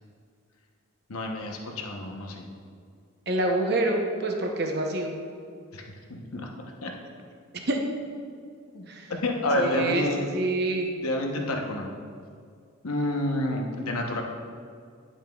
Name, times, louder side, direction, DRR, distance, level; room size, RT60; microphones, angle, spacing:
voice 1, 1.1-2.5 5.7-6.5 6.8-6.9 8.7-10.4 11.0-11.9 12.8-14.2, left 1 dB, 90° left, 2 dB, 0.9 m, -29 dB
voice 2, 3.3-5.1 7.7-7.8 8.9-9.1 9.6-10.0 10.3-10.9, right 2 dB, 50° right, 2 dB, 0.8 m, -26 dB
10.5 x 7.1 x 2.3 m, 2.2 s
head